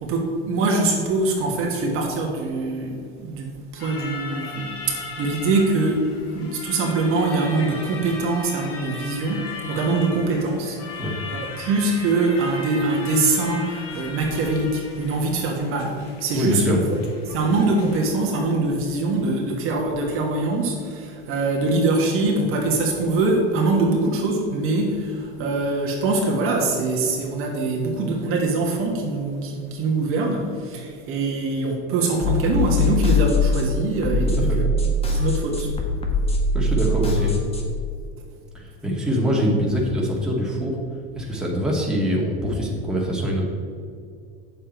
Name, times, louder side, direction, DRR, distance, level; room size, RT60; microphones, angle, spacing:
voice 1, 0.0-11.0 11.3-34.7 35.1-35.7, right 2 dB, 45° right, 0 dB, 1.6 m, -23 dB
sound 1, 3.8-18.1, left 3 dB, 50° left, 2.0 m, -37 dB
voice 2, 16.3-16.8 34.4-34.6 36.5-37.3 38.5-40.8 41.1-43.4, equal, ahead, -4 dB, 2.2 m, -24 dB
sound 2, 32.2-37.6, left 2 dB, 20° left, 1.4 m, -22 dB
8.5 x 7.3 x 4.5 m, 2.3 s
supercardioid pair, 115°, 30 cm